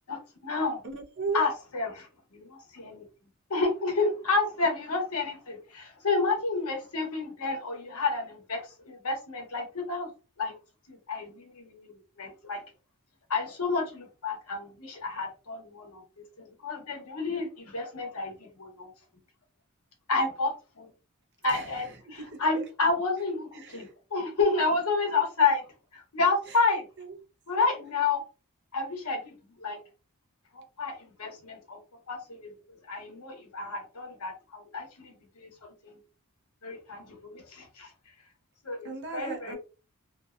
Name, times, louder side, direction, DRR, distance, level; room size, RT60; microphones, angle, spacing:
voice 1, 0.1-0.8 1.3-3.0 3.5-10.1 10.4-10.5 10.9-12.6 13.3-16.0 16.4-18.9 20.1-20.9 21.4-25.6 25.9-26.9 27.5-28.2 28.7-29.8 30.5-31.8 32.1-32.5 32.9-36.0 36.6-37.9 38.6-39.6, left 3 dB, 75° left, 1.0 m, -30 dB
voice 2, 0.8-1.4 21.5-21.7 22.3-22.6 23.6-23.9 27.0-27.1 38.8-39.6, right 4 dB, 50° right, 0.6 m, -36 dB
2.6 x 2.2 x 2.4 m
head